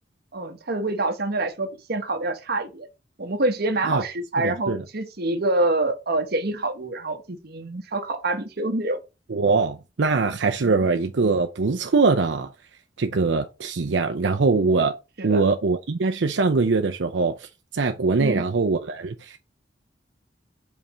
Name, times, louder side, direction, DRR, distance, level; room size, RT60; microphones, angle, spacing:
voice 1, 0.3-2.9 3.2-9.0 15.2-15.4 18.2-18.4, right 2 dB, 60° right, 1.2 m, -26 dB
voice 2, 4.4-4.8 9.3-12.5 13.0-15.0 15.2-17.5 17.7-19.4, right 4 dB, 85° right, 0.6 m, -22 dB
5.5 x 4.2 x 6.2 m
head